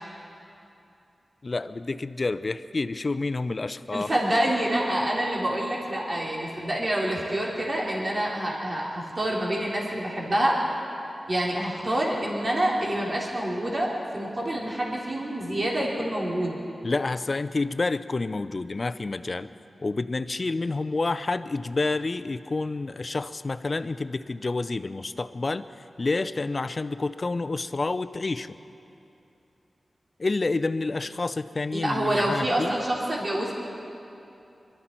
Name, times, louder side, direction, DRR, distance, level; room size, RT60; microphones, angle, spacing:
voice 1, 1.4-4.1 16.8-19.5 19.8-25.6 26.0-28.5 30.2-32.7, left 3 dB, 50° left, 13 dB, 0.5 m, -29 dB
voice 2, 3.9-10.6 11.3-16.6 31.7-33.5, right 1 dB, 45° right, -4 dB, 3.4 m, -27 dB
23.0 x 13.0 x 4.5 m, 2.7 s
cardioid pair, 45°, 0 cm